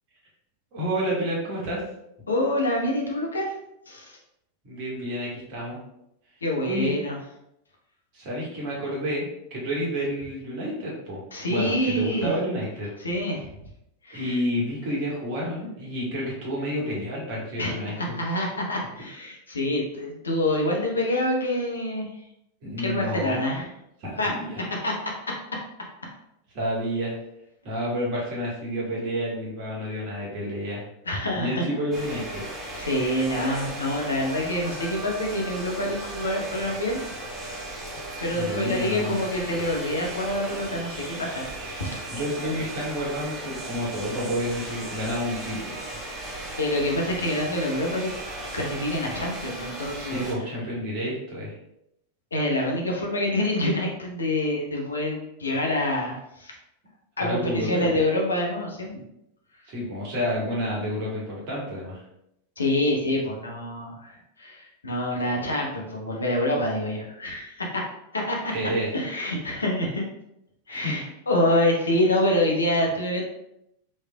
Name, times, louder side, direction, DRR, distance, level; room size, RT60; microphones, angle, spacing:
voice 1, 0.7-1.8 4.6-5.8 6.6-7.0 8.1-11.2 11.5-12.9 14.1-18.2 22.6-23.6 24.0-24.7 26.5-27.1 27.6-30.9 31.3-32.4 38.3-39.2 42.1-46.1 50.0-51.5 57.2-57.9 59.7-62.0 68.4-68.9 70.7-71.0, equal, 45° right, -5 dB, 1.4 m, -30 dB
voice 2, 2.3-3.5 3.9-4.2 6.4-7.2 11.3-12.3 13.0-13.5 14.0-14.4 17.6-22.2 22.8-23.7 24.2-24.3 24.8-24.9 31.0-31.6 32.7-37.0 38.2-42.0 46.6-48.1 48.5-50.4 52.3-56.6 57.2-59.0 59.6-59.7 62.6-67.8 68.1-68.5 68.9-70.0 70.7-73.2, left 1 dB, 75° left, -1 dB, 0.7 m, -26 dB
sound 1, 31.9-50.3, right 1 dB, 10° right, 1.0 m, -36 dB
3.2 x 3.1 x 2.3 m, 0.81 s
figure-of-eight pair, 90°, 0 cm